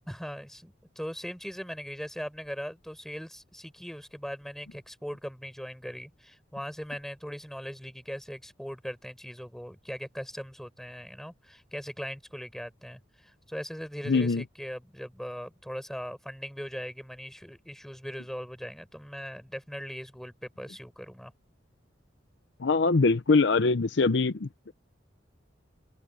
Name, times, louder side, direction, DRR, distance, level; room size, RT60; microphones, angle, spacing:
voice 1, 0.1-21.3, equal, ahead, 4.5 m, -40 dB
voice 2, 14.1-14.4 22.6-24.7, left 3 dB, 65° left, 0.6 m, -23 dB
head